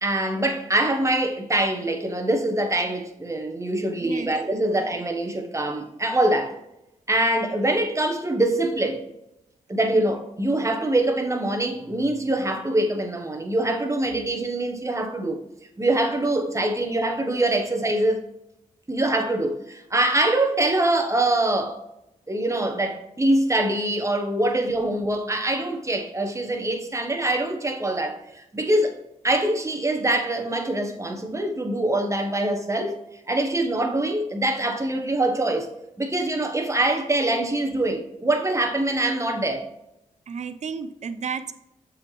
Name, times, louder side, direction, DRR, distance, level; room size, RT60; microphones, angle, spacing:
voice 1, 0.0-6.6 7.1-9.1 9.7-15.4 15.8-18.2 18.9-21.8 22.3-29.0 29.2-33.0 33.3-35.7 36.0-39.6, right 1 dB, 25° right, 1.3 m, -24 dB
voice 2, 4.0-4.8 9.9-10.0 40.3-41.5, right 6 dB, 60° right, 0.6 m, -33 dB
7.1 x 4.3 x 3.3 m
cardioid pair, 50°, 13 cm